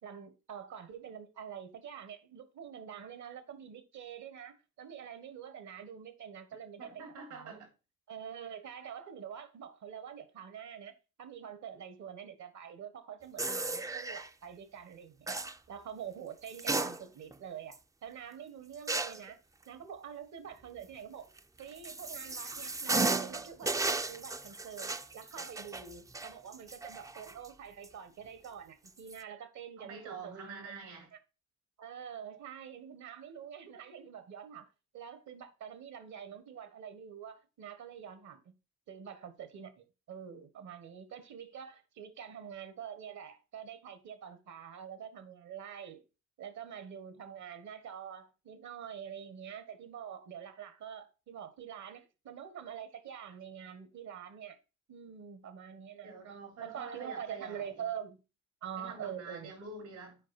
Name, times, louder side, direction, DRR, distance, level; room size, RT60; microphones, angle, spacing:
voice 1, 0.0-7.0 7.3-7.6 8.1-10.9 11.2-15.4 15.7-17.7 18.0-19.4 19.7-21.3 21.6-30.8 31.1-31.2 31.8-34.7 34.9-38.5 38.9-46.0 46.4-54.6 54.9-56.1 56.6-58.2 58.6-59.5, right 8 dB, 70° right, 1.5 m, -46 dB
voice 2, 6.8-7.7 25.3-25.4 29.8-31.1 56.0-57.8 58.8-60.2, right 4 dB, 90° right, 4.3 m, -47 dB
sound 1, 13.4-14.3 15.3-15.6 16.5-17.3 17.7-17.8 18.9-19.3 21.4-27.5 27.8-27.9 28.9-29.2, right 3 dB, 10° right, 0.3 m, -35 dB
7.5 x 5.2 x 4.3 m
cardioid pair, 90°, 30 cm